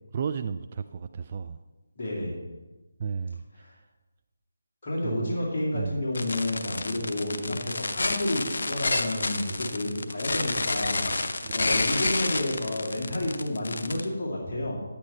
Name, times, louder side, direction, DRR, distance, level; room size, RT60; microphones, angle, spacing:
voice 1, 0.1-1.6 3.0-3.6 5.0-5.4 5.7-6.0 11.4-11.7, right 6 dB, 35° right, 10 dB, 0.3 m, -33 dB
voice 2, 2.0-2.4 3.6-3.7 4.8-14.8, left 1 dB, 35° left, -7 dB, 2.4 m, -30 dB
sound 1, 6.1-14.0, left 2 dB, 65° left, 0.7 m, -29 dB
9.7 x 8.5 x 4.3 m, 1.2 s
figure-of-eight pair, 155°, 0 cm